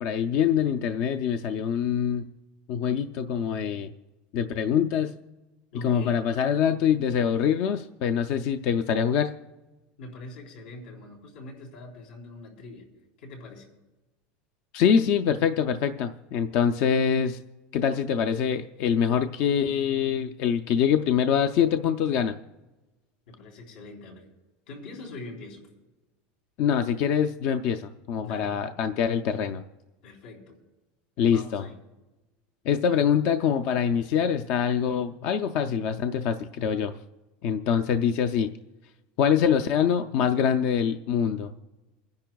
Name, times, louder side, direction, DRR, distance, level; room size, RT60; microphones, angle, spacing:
voice 1, 0.0-2.2 2.7-3.9 4.3-5.1 5.7-9.3 14.7-17.4 17.7-22.4 26.6-29.6 31.2-31.6 32.7-36.9 37.4-38.5 39.2-41.5, left 8 dB, 40° left, 7 dB, 0.4 m, -24 dB
voice 2, 5.7-6.2 10.0-12.9 13.2-13.7 23.3-24.3 24.7-25.7 28.2-28.6 30.0-30.6 31.3-31.8, left 2 dB, 85° left, -1 dB, 3.7 m, -43 dB
28.5 x 10.5 x 2.3 m, 1.1 s
supercardioid pair, 175°, 5 cm